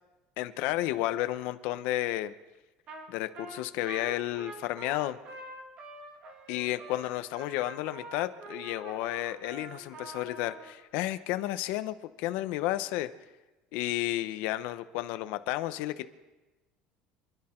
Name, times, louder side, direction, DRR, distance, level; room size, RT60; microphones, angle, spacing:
voice 1, 0.4-2.3 3.1-5.2 6.5-13.1 13.7-16.1, left 15 dB, 65° left, 10 dB, 0.9 m, -32 dB
Trumpet, 2.9-3.1 3.3-10.7, right 2 dB, 40° right, 2.4 m, -45 dB
28.0 x 11.0 x 4.5 m, 1.1 s
cardioid pair, 165°, 3 cm